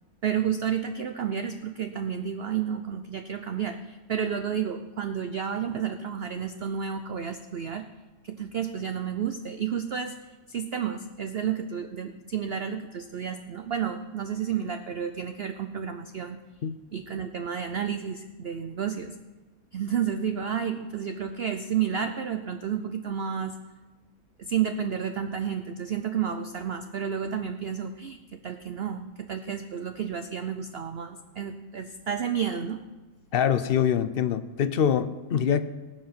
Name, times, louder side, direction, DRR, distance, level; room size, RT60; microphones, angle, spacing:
voice 1, 0.2-7.9 8.2-10.2 10.5-16.4 16.9-19.1 19.7-23.6 24.4-28.2 28.4-32.8, right 8 dB, 60° right, 8 dB, 0.6 m, -31 dB
voice 2, 33.3-35.6, left 8 dB, 75° left, 12 dB, 0.5 m, -24 dB
19.0 x 7.6 x 5.9 m, 1.2 s
omnidirectional pair, 1.7 m